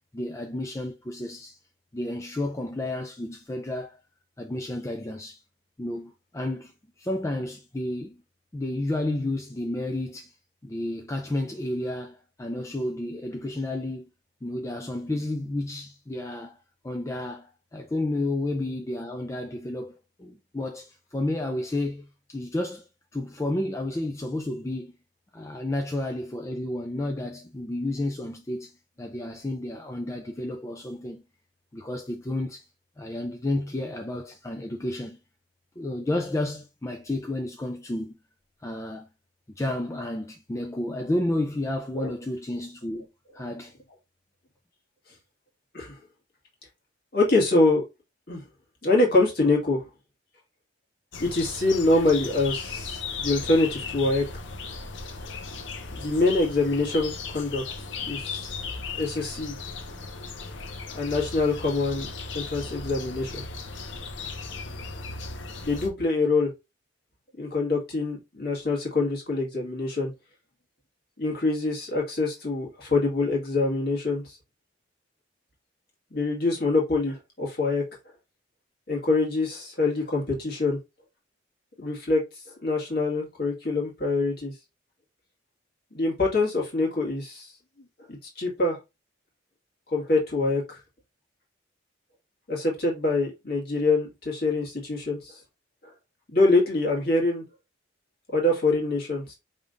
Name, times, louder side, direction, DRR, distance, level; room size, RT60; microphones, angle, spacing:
voice 1, 0.1-1.6 1.9-4.0 4.4-5.4 5.8-6.7 7.0-8.2 8.5-10.3 10.6-14.1 14.4-16.6 16.8-24.9 25.3-28.7 29.0-31.2 31.7-32.7 33.0-35.2 35.8-38.2 38.6-39.1 39.6-43.1 43.3-43.7, left 1 dB, 15° left, 0.4 m, -31 dB
voice 2, 47.1-47.8 48.3-48.4 48.8-49.8 51.2-54.2 55.9-57.6 58.1-58.4 59.0-59.6 60.9-62.1 62.3-63.4 65.6-66.5 67.4-70.1 71.2-74.4 76.1-77.8 78.9-80.8 81.8-82.2 82.6-84.5 85.9-87.5 88.1-88.8 89.9-90.8 92.5-95.4 96.3-97.4 98.3-99.3, left 2 dB, 55° left, 1.9 m, -25 dB
sound 1, 51.1-65.9, left 4 dB, 80° left, 0.8 m, -36 dB
5.2 x 3.6 x 2.5 m
head